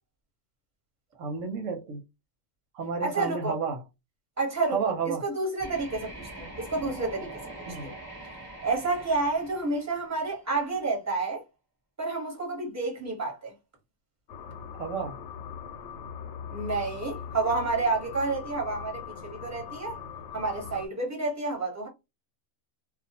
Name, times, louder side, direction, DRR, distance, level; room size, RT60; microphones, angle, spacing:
voice 1, 1.2-2.0 2.7-3.8 4.7-5.2 7.7-7.9 14.7-15.2, right 5 dB, 85° right, 1.0 m, -31 dB
voice 2, 3.0-3.5 4.4-4.9 5.2-7.3 7.8-7.9 8.6-11.4 12.0-13.5 16.5-20.0 20.3-21.9, right 3 dB, 15° right, 1.1 m, -29 dB
sound 1, 5.6-10.5, right 1 dB, 15° left, 0.7 m, -43 dB
sound 2, 14.3-20.9, left 7 dB, 85° left, 1.0 m, -41 dB
2.4 x 2.2 x 2.8 m
omnidirectional pair, 1.3 m